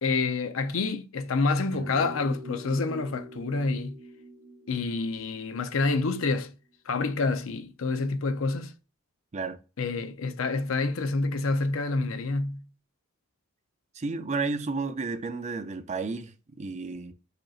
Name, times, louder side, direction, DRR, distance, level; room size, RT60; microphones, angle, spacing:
voice 1, 0.0-4.0 4.7-6.5 6.9-8.7 9.8-12.7, left 3 dB, 85° left, 0.6 m, -28 dB
sound 1, 1.7-6.3, right 1 dB, 70° right, 1.2 m, -45 dB
voice 2, 14.0-17.1, right 4 dB, 35° right, 0.5 m, -32 dB
5.0 x 4.3 x 2.4 m
head